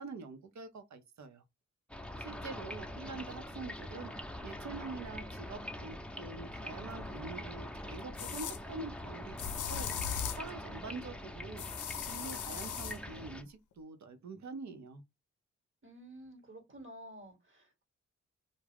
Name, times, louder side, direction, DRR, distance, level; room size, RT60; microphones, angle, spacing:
voice 1, 0.0-1.4 2.2-4.1 4.4-9.9 10.3-11.6 12.0-15.0, right 4 dB, 65° right, 0.6 m, -45 dB
sound 1, 1.9-13.4, left 1 dB, 5° left, 0.6 m, -44 dB
sound 2, 7.0-7.1 8.2-8.6 9.4-10.5 11.6-13.0, left 8 dB, 75° left, 0.5 m, -38 dB
voice 2, 15.8-17.8, right 1 dB, 40° right, 1.1 m, -51 dB
2.3 x 2.0 x 3.4 m
cardioid pair, 45°, 30 cm